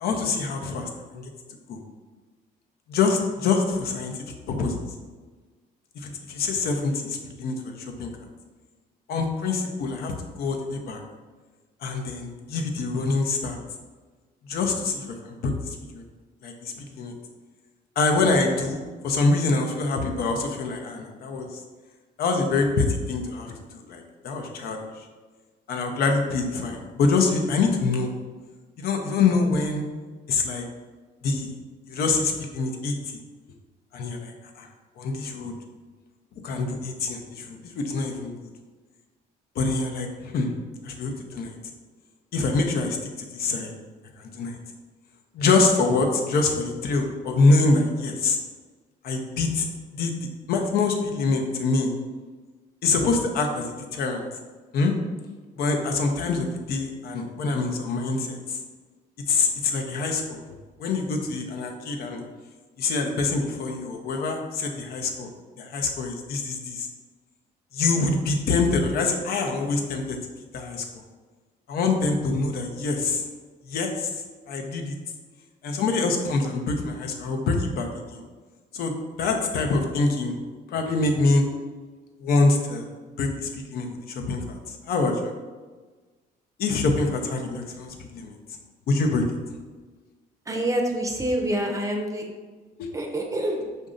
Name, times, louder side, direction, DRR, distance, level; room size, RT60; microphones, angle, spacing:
voice 1, 0.0-1.3 1.7-1.8 2.9-4.1 4.5-4.7 6.0-8.1 9.1-11.0 11.8-13.6 14.5-15.5 15.9-16.0 16.4-17.1 18.0-21.6 22.2-24.8 25.7-28.1 28.8-29.8 30.3-30.6 31.2-31.5 31.9-32.9 33.9-34.7 35.0-35.5 36.4-38.3 39.6-40.5 40.8-41.5 42.3-43.0 43.3-43.7 44.2-44.6 45.3-48.4 49.0-49.6 49.9-51.9 52.8-53.6 53.9-54.3 54.7-54.9 55.6-58.6 59.3-60.4 60.8-62.2 62.8-65.3 65.6-66.9 67.7-70.2 70.5-70.8 71.7-73.2 73.7-74.1 74.5-74.9 75.6-78.2 78.7-78.9 79.2-80.4 80.7-81.5 82.2-82.9 83.2-84.6 84.8-85.2 86.6-88.3 88.9-89.4 92.8-92.9, left 3 dB, 65° left, 3 dB, 0.7 m, -25 dB
voice 2, 90.5-92.3 92.9-93.7, right 1 dB, 20° right, 1 dB, 0.6 m, -26 dB
5.2 x 2.7 x 3.7 m, 1.3 s
cardioid pair, 110°, 17 cm